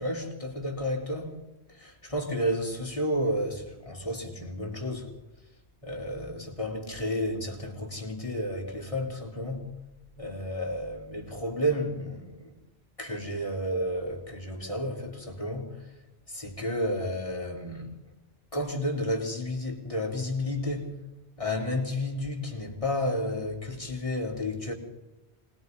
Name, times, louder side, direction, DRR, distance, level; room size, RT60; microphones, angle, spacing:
voice 1, 0.0-1.4 1.7-5.1 5.8-9.7 10.2-12.6 13.0-15.9 16.3-17.9 18.5-20.9 21.4-24.7, left 1 dB, 30° left, 0 dB, 4.2 m, -31 dB
25.5 x 20.5 x 5.5 m, 0.98 s
omnidirectional pair, 1.1 m